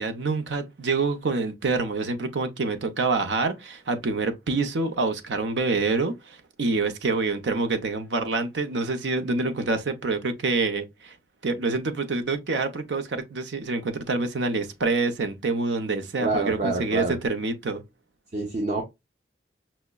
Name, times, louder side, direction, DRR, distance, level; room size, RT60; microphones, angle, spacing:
voice 1, 0.0-11.1 11.4-17.8, right 3 dB, 90° right, 0.6 m, -26 dB
voice 2, 16.2-17.2 18.3-18.8, right 3 dB, 40° right, 0.6 m, -27 dB
5.6 x 2.1 x 2.2 m
head